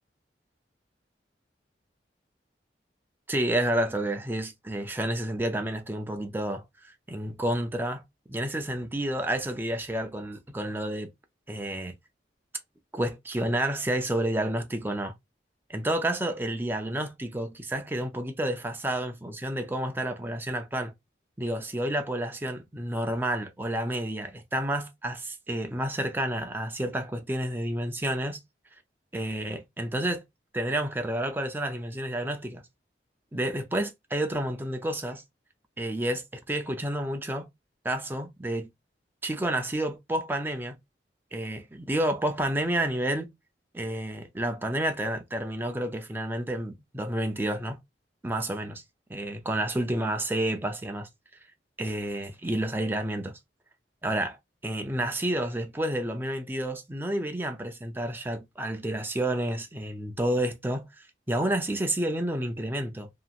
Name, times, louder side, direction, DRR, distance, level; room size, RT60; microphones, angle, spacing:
voice 1, 3.3-8.0 8.3-11.1 11.5-11.9 12.9-15.1 15.7-20.9 21.4-28.4 29.1-30.2 30.5-32.6 33.3-35.2 35.8-37.5 37.8-38.7 39.2-40.8 41.3-43.3 43.7-47.8 48.2-48.8 49.1-51.1 51.8-53.3 54.0-54.4 54.6-63.1, right 1 dB, 10° right, 0.4 m, -30 dB
2.8 x 2.6 x 2.4 m
head